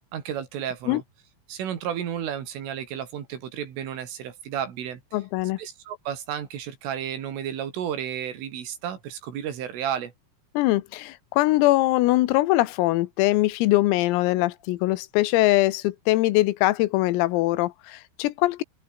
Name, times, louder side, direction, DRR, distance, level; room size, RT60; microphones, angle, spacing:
voice 1, 0.1-1.0 1.5-5.0 5.6-10.1, right 9 dB, 70° right, 5.6 m, -32 dB
voice 2, 5.1-5.6 10.6-18.6, left 18 dB, 90° left, 3.8 m, -22 dB
open air
omnidirectional pair, 5.9 m